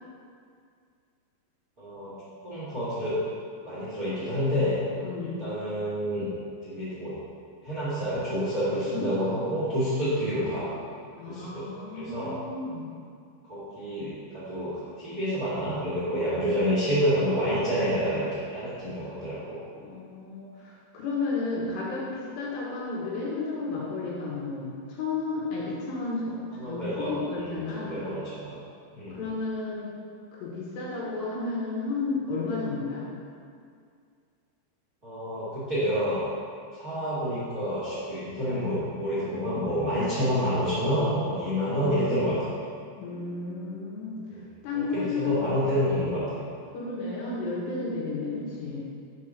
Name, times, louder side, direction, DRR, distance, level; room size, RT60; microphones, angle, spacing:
voice 1, 1.8-2.1 2.4-3.2 3.6-4.7 5.2-6.3 6.6-7.2 7.6-10.7 11.3-11.7 11.9-12.3 13.5-19.6 26.5-28.6 28.9-29.2 35.0-36.2 36.7-42.6 44.3-44.4 44.7-46.5, equal, 45° right, -10 dB, 1.1 m, -28 dB
voice 2, 5.0-5.4 8.7-9.1 11.2-12.9 19.8-28.0 29.1-29.9 30.4-33.1 43.0-44.2 44.6-45.3 46.7-48.8, left 3 dB, 75° left, -5 dB, 3.4 m, -32 dB
6.0 x 5.9 x 6.3 m, 2.2 s
omnidirectional pair, 5.2 m